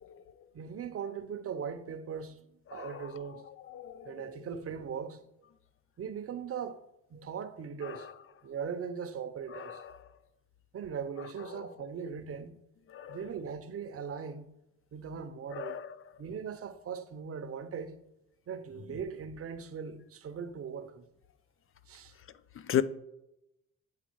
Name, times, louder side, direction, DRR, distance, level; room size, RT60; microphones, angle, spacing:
voice 1, 0.5-3.4 4.0-5.3 6.0-6.8 7.1-8.1 8.4-9.8 10.7-12.5 13.1-14.5 14.9-15.8 16.2-18.0 18.5-21.1 21.9-22.1, right 7 dB, 50° right, 0.8 m, -39 dB
voice 2, 2.7-4.3 7.8-8.1 9.5-9.9 12.9-13.2 15.5-15.9 22.6-22.8, left 10 dB, 45° left, 0.5 m, -36 dB
8.3 x 3.6 x 4.6 m
cardioid pair, 90°, 30 cm